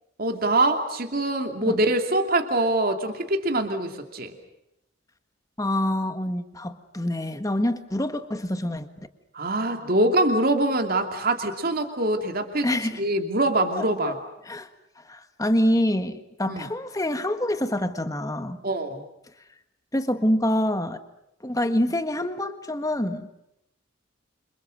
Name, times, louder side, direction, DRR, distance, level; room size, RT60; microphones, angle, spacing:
voice 1, 0.2-4.3 9.3-14.2 16.5-16.6 18.6-19.0, right 1 dB, 45° right, 5 dB, 2.8 m, -24 dB
voice 2, 5.6-8.9 12.6-13.0 13.8-14.1 14.5-14.7 15.0-18.6 19.9-21.0 21.4-23.3, left 1 dB, 15° left, 9 dB, 1.5 m, -26 dB
29.0 x 26.5 x 6.5 m, 0.83 s
head